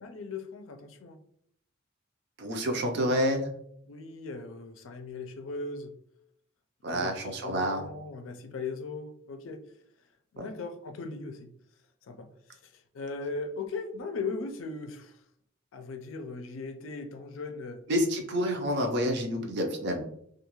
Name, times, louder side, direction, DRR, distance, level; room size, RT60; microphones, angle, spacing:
voice 1, 0.0-1.2 3.9-5.9 6.9-9.6 10.3-11.5 12.0-15.2 15.7-17.9, left 3 dB, 75° left, 0.4 m, -38 dB
voice 2, 2.4-3.5 6.8-7.9 10.4-10.5 17.9-20.0, equal, 60° right, 0.5 m, -28 dB
2.4 x 2.3 x 2.9 m
head